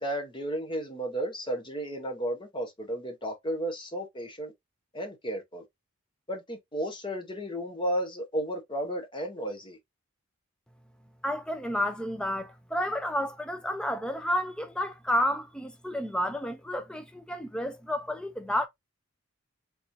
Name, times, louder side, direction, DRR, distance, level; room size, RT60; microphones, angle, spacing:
voice 1, 0.0-4.5 4.9-5.6 6.3-9.8, right 1 dB, 20° left, 0.9 m, -33 dB
voice 2, 11.2-18.7, equal, 5° left, 0.4 m, -31 dB
3.5 x 3.0 x 2.6 m
head